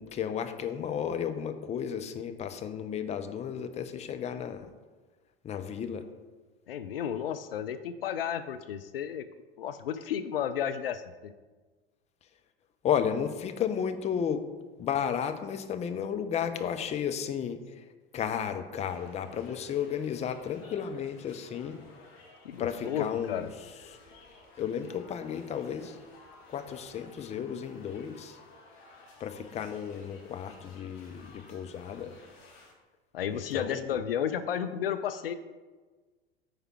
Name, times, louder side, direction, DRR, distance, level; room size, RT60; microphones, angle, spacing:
voice 1, 0.0-4.7 5.4-6.0 12.8-14.4 14.8-17.6 18.1-21.8 22.6-23.4 24.6-26.0 26.5-28.4 29.2-32.1 33.3-34.0, left 8 dB, 20° left, 8 dB, 0.7 m, -33 dB
voice 2, 6.7-9.2 9.6-11.3 22.4-23.5 33.1-35.3, left 9 dB, 70° left, 11 dB, 0.5 m, -33 dB
sound 1, 18.8-32.7, left 3 dB, 40° left, 2.0 m, -55 dB
9.2 x 4.9 x 4.5 m, 1.3 s
figure-of-eight pair, 80°, 30 cm